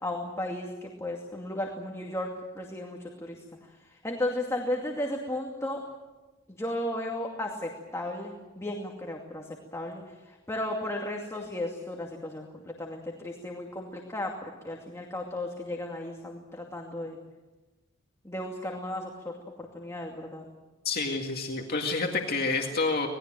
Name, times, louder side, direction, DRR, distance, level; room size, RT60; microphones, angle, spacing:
voice 1, 0.0-3.4 4.0-5.8 6.6-12.5 12.8-17.2 18.2-19.3 19.7-20.5, left 1 dB, 15° left, 0 dB, 2.5 m, -34 dB
voice 2, 20.8-23.1, left 3 dB, 50° left, 1 dB, 2.1 m, -28 dB
26.0 x 20.0 x 7.7 m, 1.2 s
head